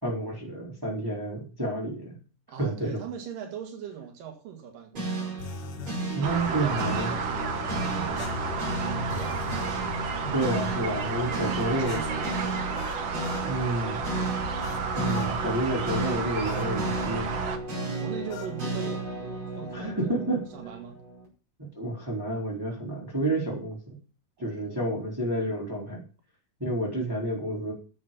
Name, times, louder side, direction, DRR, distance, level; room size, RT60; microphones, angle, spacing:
voice 1, 0.0-2.2 2.6-3.0 6.1-7.1 10.2-12.0 13.3-14.0 14.9-17.3 19.7-20.4 21.6-24.0 24.4-26.0 26.6-27.7, right 1 dB, 5° right, -2 dB, 3.7 m, -30 dB
voice 2, 2.5-5.6 6.3-10.0 11.1-14.5 17.8-19.1 19.5-20.3 20.5-21.0 24.4-24.9, right 8 dB, 90° right, 4 dB, 3.5 m, -42 dB
sound 1, 4.9-21.2, right 2 dB, 35° right, 6.0 m, -33 dB
sound 2, 5.4-6.0 8.2-9.7 11.9-13.5 14.6-15.4 16.5-16.8 18.3-18.6, left 6 dB, 75° left, 2.3 m, -41 dB
sound 3, 6.2-17.6, right 5 dB, 55° right, 2.0 m, -32 dB
11.0 x 7.3 x 7.1 m, 0.36 s
omnidirectional pair, 3.7 m